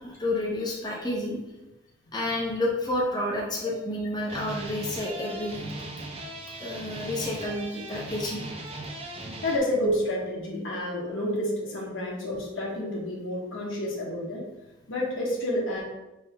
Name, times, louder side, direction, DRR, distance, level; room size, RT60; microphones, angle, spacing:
voice 1, 0.0-1.4 2.1-5.6 6.6-8.4, left 1 dB, 20° left, -4 dB, 0.7 m, -30 dB
sound 1, 3.4-3.9 4.2-9.6, right 1 dB, 30° right, 0.5 m, -38 dB
voice 2, 9.4-14.4 14.9-15.8, left 1 dB, 80° left, -3 dB, 1.2 m, -29 dB
5.1 x 3.4 x 2.2 m, 0.98 s
head